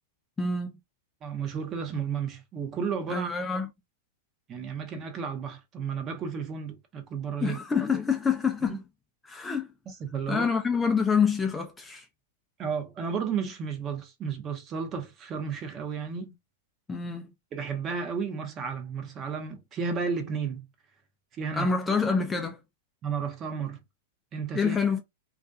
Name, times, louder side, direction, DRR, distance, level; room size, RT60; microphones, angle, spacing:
voice 1, 0.4-0.8 3.1-3.7 7.4-8.8 9.2-9.7 10.3-12.1 16.9-17.3 21.5-22.6 24.5-25.0, left 5 dB, 10° left, 0.4 m, -27 dB
voice 2, 1.2-3.3 4.5-7.6 8.6-8.8 9.9-10.5 12.6-16.4 17.5-20.7 21.3-21.7 23.0-23.8 24.3-24.8, right 6 dB, 30° right, 0.6 m, -33 dB
2.4 x 2.2 x 2.5 m
hypercardioid pair, 135°, 0 cm